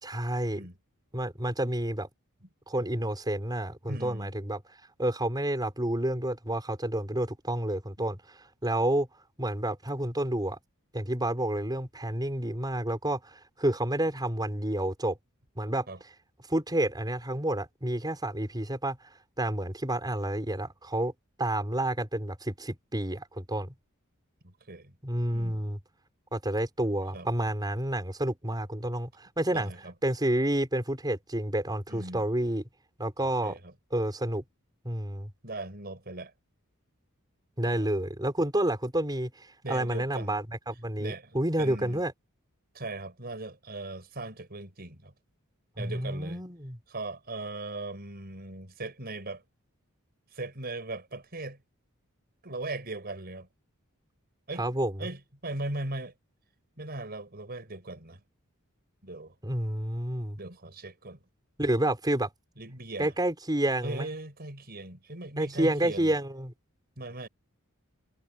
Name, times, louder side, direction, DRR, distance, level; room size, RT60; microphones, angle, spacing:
voice 1, 0.0-0.6 1.1-2.1 2.7-4.6 5.0-9.1 9.4-10.6 10.9-15.2 15.6-15.9 16.5-19.1 19.4-21.1 21.4-23.7 25.0-25.8 26.3-29.7 30.0-32.6 33.0-33.6 33.9-34.4 34.8-35.3 37.6-42.1 45.8-46.8 54.6-55.1 59.4-60.4 61.6-62.3 63.0-64.1 65.4-66.5, right 1 dB, 20° right, 5.4 m, -29 dB
voice 2, 3.9-4.3 15.9-16.0 24.4-24.9 25.3-25.7 27.1-27.3 29.5-29.9 31.9-32.3 33.2-33.7 35.4-36.3 37.6-37.9 39.6-40.4 41.0-42.0 42.7-45.1 45.8-46.4 46.9-49.4 50.3-51.6 52.4-53.5 54.5-54.6 55.0-56.1 56.8-58.2 59.0-59.3 60.4-61.2 62.6-63.1 63.8-66.1 67.0-67.3, right 2 dB, 45° right, 5.8 m, -39 dB
head